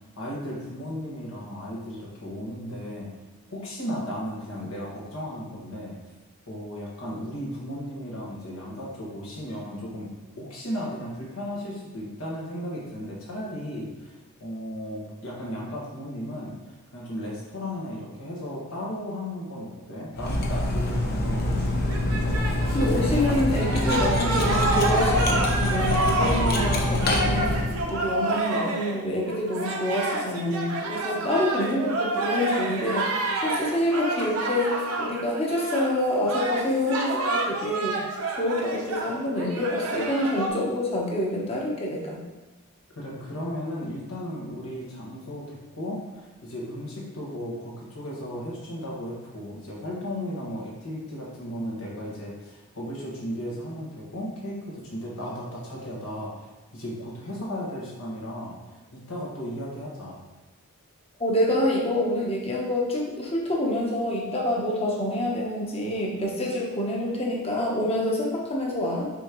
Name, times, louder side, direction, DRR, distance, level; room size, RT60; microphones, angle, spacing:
voice 1, 0.2-3.1 3.5-6.0 6.5-10.1 10.4-21.6 43.0-58.6 58.9-60.2, equal, 75° left, -4 dB, 1.7 m, -35 dB
Cutlery silverware, 20.2-27.9, left 1 dB, 45° left, 0.8 m, -25 dB
sound 1, 21.9-35.9 36.2-40.5, right 2 dB, 80° right, 0.9 m, -29 dB
voice 2, 22.7-27.6 27.9-38.0 38.3-42.2 61.2-69.1, left 1 dB, 25° left, -2 dB, 1.1 m, -27 dB
6.1 x 5.0 x 3.1 m, 1.2 s
head